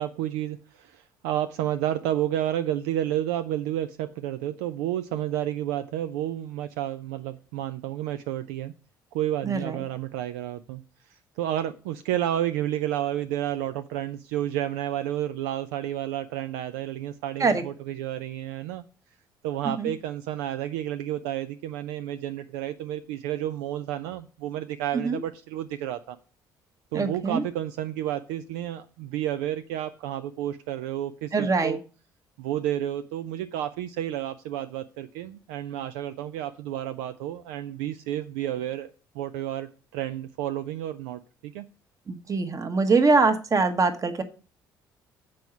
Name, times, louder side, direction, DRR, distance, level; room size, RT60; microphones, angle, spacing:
voice 1, 0.0-8.7 9.1-10.8 11.1-18.8 19.4-26.2 26.9-31.8 32.4-41.7, right 12 dB, 65° right, 0.5 m, -31 dB
voice 2, 9.4-9.8 17.4-17.6 19.8-19.9 25.0-25.2 26.9-27.4 31.3-31.8 42.1-44.2, right 4 dB, 30° right, 1.2 m, -23 dB
7.6 x 4.7 x 6.9 m
figure-of-eight pair, 50°, 11 cm